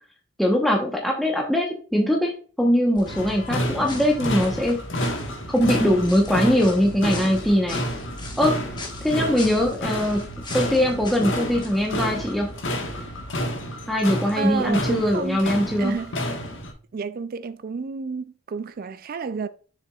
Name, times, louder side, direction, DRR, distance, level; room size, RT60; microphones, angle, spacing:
voice 1, 0.4-2.3 2.6-4.8 5.5-7.8 8.4-8.6 9.0-10.2 10.5-12.5 13.9-16.0, equal, ahead, 1.0 m, -21 dB
sound 1, 3.0-13.5, left 1 dB, 20° left, 1.4 m, -40 dB
sound 2, 3.1-16.7, equal, 60° left, 1.4 m, -30 dB
voice 2, 14.4-15.4 15.8-16.1 16.9-19.5, right 5 dB, 45° right, 0.4 m, -30 dB
7.0 x 6.8 x 2.4 m
head